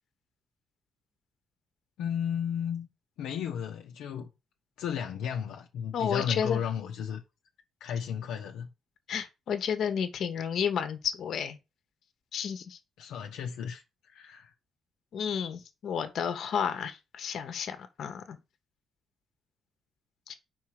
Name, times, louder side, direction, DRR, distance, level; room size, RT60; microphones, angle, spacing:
voice 1, 2.0-2.9 3.2-4.3 4.8-7.2 7.8-8.7 13.0-14.5, left 8 dB, 85° left, 0.8 m, -34 dB
voice 2, 5.9-6.6 9.1-11.6 12.3-12.8 15.1-18.4 20.3-20.4, left 7 dB, 65° left, 1.1 m, -31 dB
4.8 x 4.2 x 5.9 m
cardioid pair, 90°, 0 cm